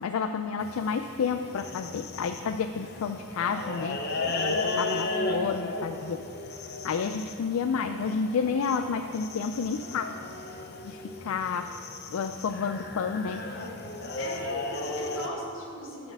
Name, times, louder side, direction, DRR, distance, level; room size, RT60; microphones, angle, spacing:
voice 1, 0.0-6.3 6.8-10.1 10.8-11.7 12.1-13.4, left 5 dB, 85° left, 7 dB, 0.4 m, -30 dB
sound 1, 0.6-15.3, left 2 dB, 50° left, 0.7 m, -35 dB
voice 2, 14.2-16.1, left 1 dB, 65° left, -2 dB, 1.9 m, -38 dB
11.5 x 4.3 x 7.8 m, 2.6 s
head